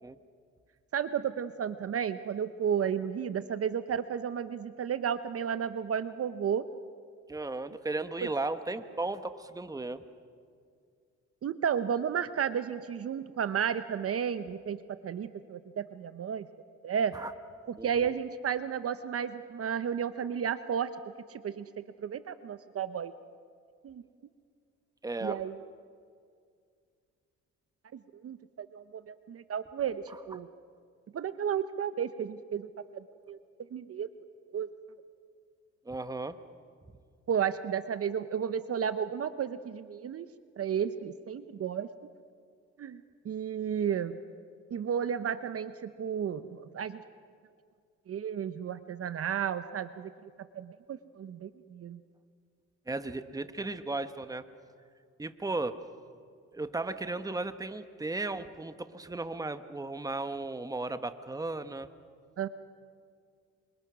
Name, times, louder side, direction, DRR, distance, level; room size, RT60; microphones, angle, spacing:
voice 1, 0.9-6.6 11.4-16.5 16.8-17.1 17.7-20.9 21.3-23.1 23.8-24.0 25.2-25.5 28.2-30.5 31.1-33.4 33.7-34.1 34.5-34.7 37.3-40.3 40.6-41.9 42.8-44.2 44.7-47.0 48.1-50.1 50.5-52.0 62.4-62.5, right 8 dB, 50° right, 12 dB, 0.8 m, -33 dB
voice 2, 7.3-10.0 17.1-17.3 17.8-18.1 25.0-25.4 35.8-36.4 52.9-54.4 55.2-55.8 56.5-61.9, right 2 dB, 10° right, 10 dB, 1.1 m, -35 dB
27.0 x 25.5 x 6.2 m, 2.2 s
cardioid pair, 90°, 30 cm